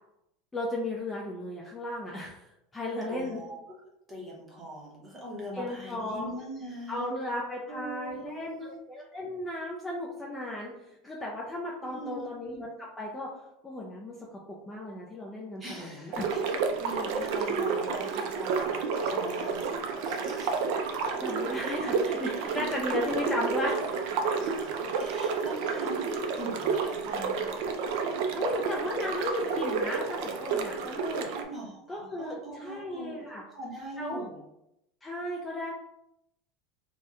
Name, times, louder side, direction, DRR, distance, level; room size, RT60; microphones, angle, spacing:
voice 1, 0.5-3.4 5.5-6.4 6.9-13.3 13.6-14.4 14.7-16.3 21.2-24.0 26.2-26.3 28.3-31.3 31.9-33.4 34.0-34.3 35.0-35.7, left 1 dB, 10° left, -3 dB, 0.3 m, -35 dB
voice 2, 3.1-3.6 4.1-7.1 7.7-8.8 11.8-12.3 15.6-16.5 16.8-18.8 19.1-19.7 20.0-20.6 22.5-23.0 24.3-27.5 31.3-34.4, right 1 dB, 15° right, -3 dB, 0.8 m, -42 dB
sound 1, 16.1-31.4, right 5 dB, 60° right, 0.4 m, -30 dB
2.8 x 2.1 x 3.5 m, 0.83 s
supercardioid pair, 160°, 0 cm